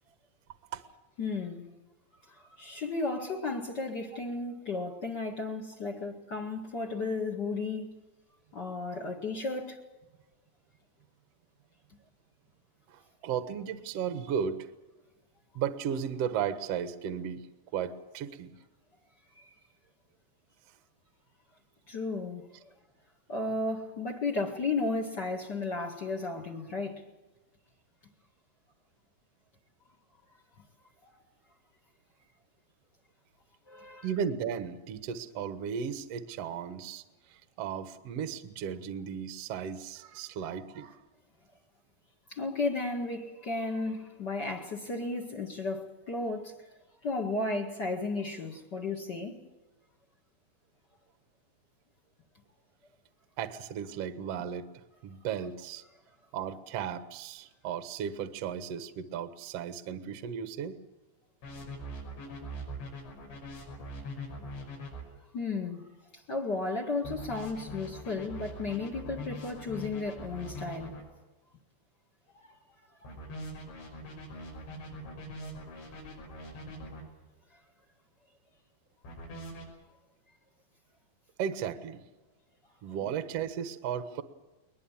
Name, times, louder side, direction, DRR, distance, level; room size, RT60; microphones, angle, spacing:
voice 1, 1.2-1.7 2.6-7.9 8.5-9.8 19.4-19.5 21.9-22.5 23.3-27.1 31.0-31.1 33.7-34.1 42.3-46.5 47.0-49.4 65.3-65.8 66.3-71.0 72.3-72.5 73.1-73.2, left 3 dB, 55° left, 1.1 m, -34 dB
voice 2, 12.9-14.6 15.5-17.4 17.7-18.5 34.0-37.0 37.6-41.0 53.4-54.6 55.0-55.8 56.3-60.7 81.4-82.0 82.8-84.2, right 8 dB, 85° right, 1.4 m, -35 dB
sound 1, 61.4-65.0 67.0-71.0 73.0-77.0 79.0-79.7, equal, 75° left, 7.9 m, -42 dB
21.5 x 21.0 x 7.3 m
omnidirectional pair, 5.1 m